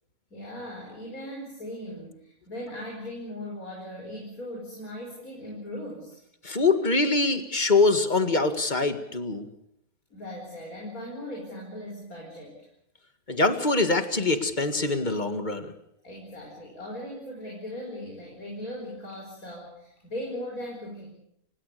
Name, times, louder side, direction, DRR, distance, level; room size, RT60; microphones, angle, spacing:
voice 1, 0.3-6.2 10.1-12.7 16.0-21.1, left 1 dB, 80° left, 0 dB, 5.6 m, -38 dB
voice 2, 6.4-9.5 13.3-15.7, left 3 dB, 35° left, 9 dB, 2.0 m, -24 dB
30.0 x 17.5 x 6.8 m, 0.75 s
omnidirectional pair, 1.5 m